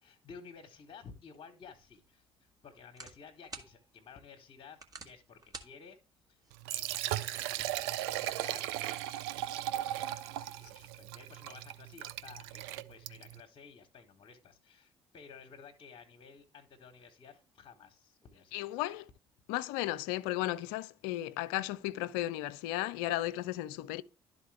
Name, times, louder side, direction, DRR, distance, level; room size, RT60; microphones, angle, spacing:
voice 1, 0.0-6.0 6.3-6.4 6.7-8.7 8.9-9.9 10.2-19.0, left 6 dB, 45° left, 1.2 m, -54 dB
sound 1, 1.7-7.8, right 3 dB, 30° right, 1.6 m, -54 dB
Liquid, 6.5-13.4, right 14 dB, 70° right, 0.4 m, -37 dB
voice 2, 18.5-19.1 19.5-24.0, left 15 dB, 70° left, 0.4 m, -35 dB
12.0 x 4.1 x 3.3 m
figure-of-eight pair, 45°, 13 cm